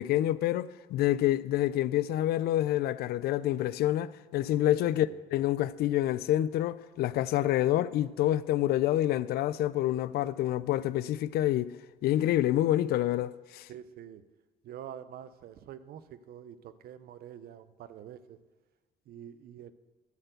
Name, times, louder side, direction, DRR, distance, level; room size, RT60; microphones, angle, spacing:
voice 1, 0.0-11.7 12.0-13.7, left 13 dB, 70° left, 0.4 m, -27 dB
voice 2, 4.9-5.2 13.7-14.2 14.6-18.4 19.1-19.7, right 10 dB, 65° right, 0.6 m, -46 dB
11.0 x 4.4 x 8.0 m
cardioid pair, 110°, 17 cm